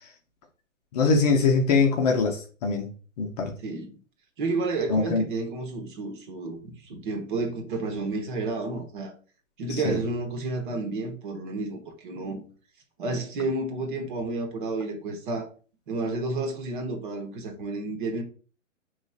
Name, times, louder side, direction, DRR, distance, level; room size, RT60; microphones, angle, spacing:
voice 1, 0.9-2.9 3.2-3.5 4.9-5.3 9.8-10.0, left 4 dB, 30° left, 0.8 m, -22 dB
voice 2, 3.6-3.9 4.4-9.1 9.6-12.4 13.0-15.5 15.9-18.2, right 3 dB, 40° right, 1.2 m, -31 dB
5.1 x 3.1 x 2.4 m
figure-of-eight pair, 125°, 39 cm